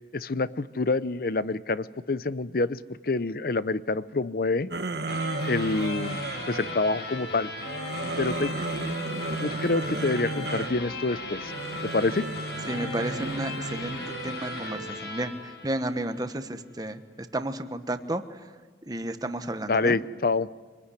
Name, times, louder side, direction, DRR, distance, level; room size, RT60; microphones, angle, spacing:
voice 1, 0.0-4.7 5.5-7.5 8.2-9.0 9.4-11.5 11.9-12.2 19.7-20.5, left 3 dB, 55° left, 16 dB, 0.7 m, -27 dB
sound 1, 4.7-6.8 7.6-10.8 11.4-14.9, right 2 dB, 65° right, 1.2 m, -34 dB
sound 2, 5.1-16.3, left 2 dB, 75° left, 7.7 m, -37 dB
voice 2, 12.7-18.5 18.9-20.0, right 1 dB, 20° right, 9 dB, 1.2 m, -32 dB
25.5 x 20.0 x 9.9 m, 1.4 s
head